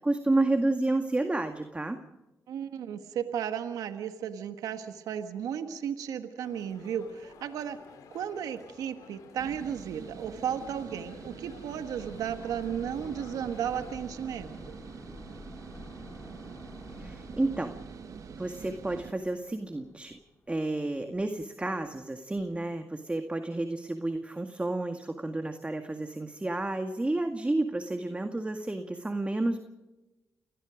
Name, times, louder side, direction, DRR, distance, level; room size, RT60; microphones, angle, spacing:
voice 1, 0.0-2.0 17.0-17.7 18.4-20.2 20.5-29.6, right 2 dB, 20° right, 6 dB, 2.0 m, -30 dB
voice 2, 2.5-7.8 8.1-14.8, right 8 dB, 85° right, 8 dB, 1.5 m, -34 dB
sound 1, 6.4-14.0, left 6 dB, 85° left, 3.1 m, -52 dB
sound 2, 9.4-19.1, right 6 dB, 65° right, 1.3 m, -46 dB
sound 3, 12.0-20.7 21.0-21.1, left 2 dB, 35° left, 3.2 m, -50 dB
28.5 x 19.0 x 5.1 m, 1.0 s
supercardioid pair, 55°, 6 cm